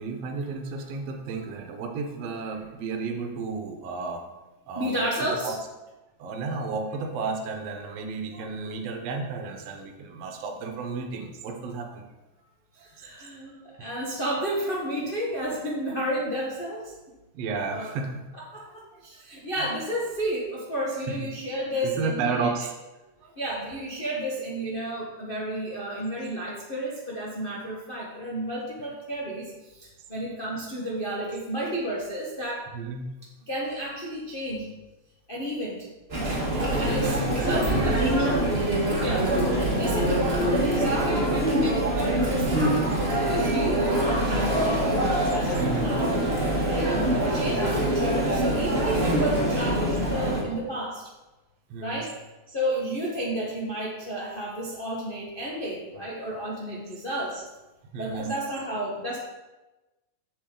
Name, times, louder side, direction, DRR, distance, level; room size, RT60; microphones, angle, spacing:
voice 1, 0.0-4.2 4.7-5.6 6.2-12.0 12.8-13.1 13.8-13.9 17.3-18.2 18.5-19.2 19.6-19.7 21.1-21.3 21.8-22.7 23.2-23.4 32.7-33.1 36.7-38.6 39.0-39.3 39.9-40.0 45.6-45.9 47.5-47.8 51.7-52.1 57.9-58.3, right 4 dB, 65° right, 4 dB, 1.9 m, -33 dB
voice 2, 4.7-5.5 12.7-16.9 17.7-17.9 18.3-22.5 23.4-32.7 33.5-34.7 35.3-35.9 36.5-38.5 39.0-39.3 39.8-40.4 40.7-46.1 46.6-46.9 47.2-51.1 51.8-52.1 52.5-57.4 58.0-59.2, right 1 dB, 85° left, -5 dB, 0.4 m, -32 dB
Chatter, 36.1-50.4, right 1 dB, 30° right, 1.2 m, -24 dB
7.4 x 7.3 x 3.8 m, 1.1 s
omnidirectional pair, 3.3 m